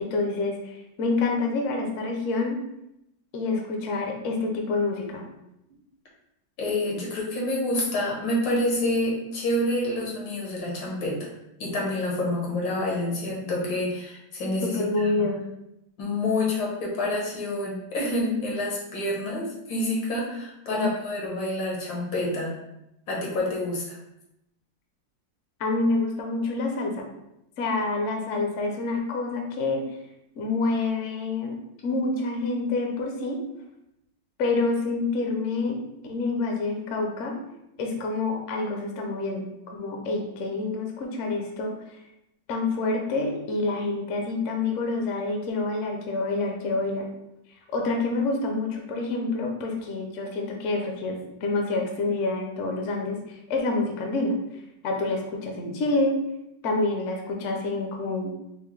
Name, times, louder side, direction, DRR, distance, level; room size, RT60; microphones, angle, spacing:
voice 1, 0.0-2.6 3.3-5.2 14.7-15.4 20.7-20.9 25.6-27.1 27.6-29.8 30.4-31.6 31.8-33.4 34.4-37.3 37.8-41.7 42.5-47.1 47.7-51.2 51.4-54.4 54.8-56.2 56.6-58.3, left 3 dB, 65° left, 2 dB, 0.8 m, -27 dB
voice 2, 6.6-11.3 11.6-15.1 16.0-22.5 23.1-24.0, left 1 dB, 85° left, -3 dB, 1.8 m, -28 dB
5.4 x 2.1 x 3.1 m, 0.85 s
omnidirectional pair, 2.0 m